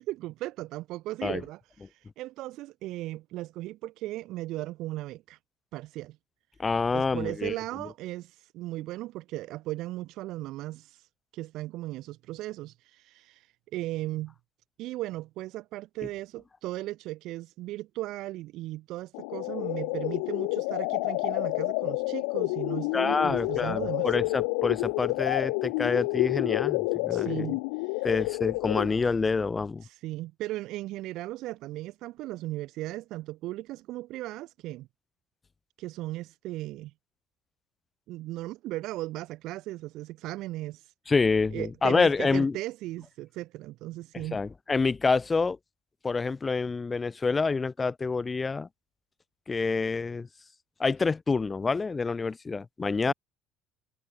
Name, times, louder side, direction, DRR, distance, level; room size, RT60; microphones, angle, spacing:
voice 1, 0.0-5.4 5.7-6.2 6.9-14.3 14.8-24.2 27.1-28.1 29.8-34.9 35.8-36.9 38.1-40.9 41.5-44.4 53.1-53.2, right 17 dB, 65° right, 2.6 m, -37 dB
voice 2, 6.6-7.5 22.9-27.6 28.0-29.8 41.1-42.6 44.1-45.6 46.0-48.7 49.5-50.3 50.8-53.1, left 4 dB, 20° left, 0.9 m, -27 dB
sound 1, 19.1-29.1, left 35 dB, 90° left, 0.7 m, -29 dB
supercardioid pair, 100°, 0 cm